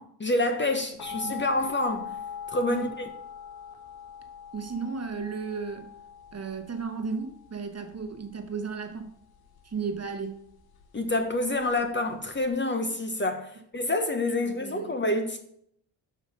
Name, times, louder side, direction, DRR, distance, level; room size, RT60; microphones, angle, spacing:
voice 1, 0.0-2.1 2.5-3.1 10.9-15.4, left 2 dB, 25° left, 0.8 m, -28 dB
sound 1, 1.0-12.5, left 7 dB, 50° left, 0.9 m, -42 dB
voice 2, 4.5-5.9 6.3-9.1 9.6-10.4 14.4-14.9, right 5 dB, 30° right, 1.0 m, -34 dB
6.3 x 3.2 x 5.3 m
hypercardioid pair, 45°, 47 cm